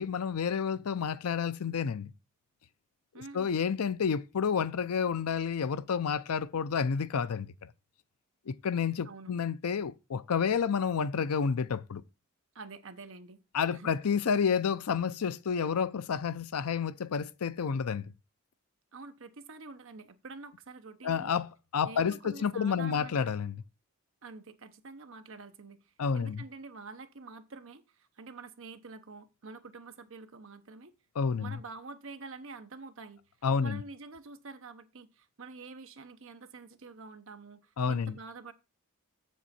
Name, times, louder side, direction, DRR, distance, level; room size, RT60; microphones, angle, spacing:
voice 1, 0.0-2.1 3.3-7.5 8.5-12.0 13.5-18.0 21.0-23.6 26.0-26.4 31.2-31.6 33.4-33.8 37.8-38.1, left 6 dB, 80° left, 0.5 m, -30 dB
voice 2, 3.1-3.6 9.0-9.4 12.5-13.4 13.7-13.9 14.3-14.4 18.9-21.3 21.8-23.3 24.2-30.9 31.4-33.2 33.6-38.5, right 3 dB, 60° right, 0.8 m, -47 dB
7.4 x 6.9 x 4.3 m
head